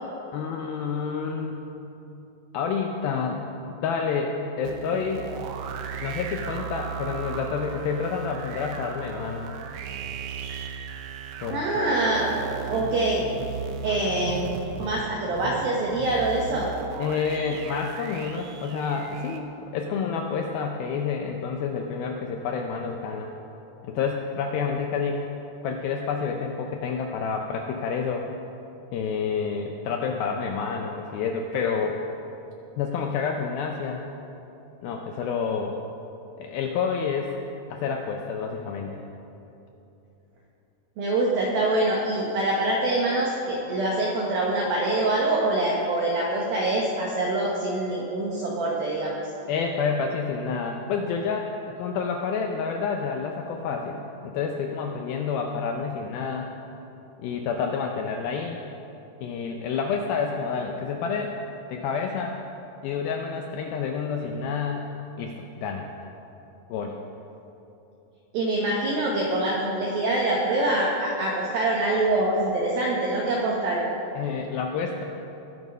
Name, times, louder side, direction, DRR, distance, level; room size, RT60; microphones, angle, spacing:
voice 1, 0.3-1.7 2.5-5.3 6.0-9.5 11.4-12.0 13.9-14.1 17.0-23.3 23.8-25.2 25.6-28.3 28.9-32.0 32.8-34.0 34.8-35.8 36.4-37.3 37.7-39.0 49.5-51.5 51.8-56.5 57.2-58.6 59.2-61.4 61.7-62.4 62.8-64.8 65.2-65.9 66.7-67.0 74.2-75.0, left 5 dB, 85° left, 2 dB, 2.1 m, -29 dB
sound 1, 4.6-19.4, right 7 dB, 85° right, 3.2 m, -36 dB
voice 2, 11.5-12.3 12.6-13.2 13.8-14.5 14.8-16.7 41.0-49.2 68.3-73.9, right 2 dB, 65° right, -4 dB, 2.7 m, -25 dB
20.5 x 7.3 x 5.4 m, 2.9 s
omnidirectional pair, 5.1 m